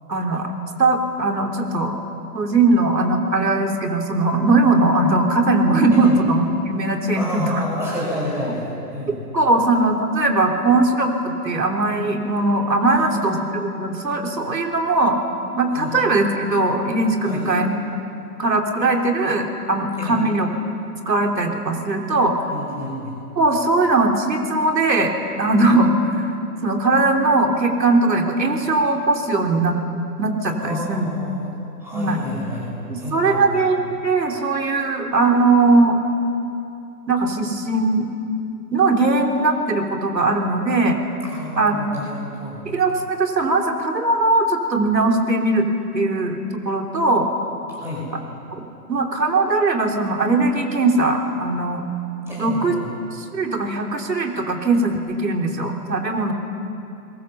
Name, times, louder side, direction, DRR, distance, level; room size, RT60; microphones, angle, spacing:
voice 1, 0.1-0.5 0.8-2.0 2.3-7.6 9.1-15.2 15.6-17.8 18.4-20.5 21.1-22.4 23.4-25.1 25.4-26.3 26.6-29.8 30.2-31.1 31.9-32.2 32.9-36.0 37.1-38.1 38.7-41.0 41.6-41.9 42.7-45.7 45.9-47.3 48.5-48.6 48.9-51.8 52.4-52.8 53.2-56.3, right 2 dB, 90° right, 3 dB, 3.5 m, -20 dB
voice 2, 7.1-9.2 12.8-13.4 15.7-15.9 17.2-17.4 20.0-20.2 22.5-23.2 30.6-31.5 31.8-32.7 33.0-33.6 41.2-42.7 47.7-48.1 52.3-52.9, equal, 5° right, -6 dB, 5.1 m, -30 dB
28.0 x 22.0 x 7.0 m, 2.7 s
hypercardioid pair, 165°, 49 cm